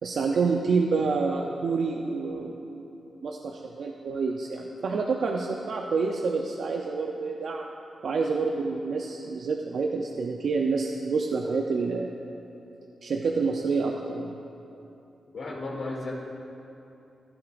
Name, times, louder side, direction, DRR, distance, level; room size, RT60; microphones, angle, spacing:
voice 1, 0.0-7.7 8.0-12.1 13.0-14.3, right 4 dB, 70° right, 1 dB, 0.6 m, -28 dB
voice 2, 15.3-16.1, left 2 dB, 75° left, -3 dB, 2.4 m, -34 dB
15.5 x 11.5 x 2.5 m, 2.8 s
cardioid pair, 75°, 0 cm